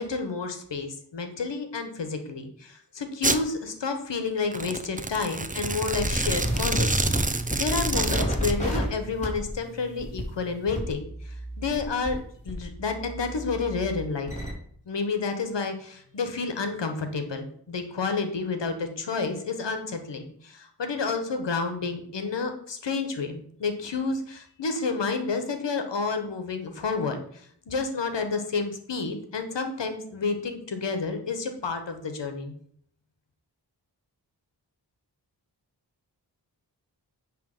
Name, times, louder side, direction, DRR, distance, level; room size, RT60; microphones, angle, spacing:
voice 1, 0.0-12.2 12.4-14.3 14.9-27.2 27.7-32.5, left 4 dB, 85° left, 7 dB, 1.3 m, -30 dB
Domestic sounds home sounds, 3.2-3.4 4.4-8.5, right 3 dB, 20° right, 0.7 m, -28 dB
sound 1, 5.9-12.2 12.5-14.5, equal, 15° left, 3.8 m, -30 dB
9.6 x 3.4 x 6.6 m, 0.64 s
cardioid pair, 50°, 42 cm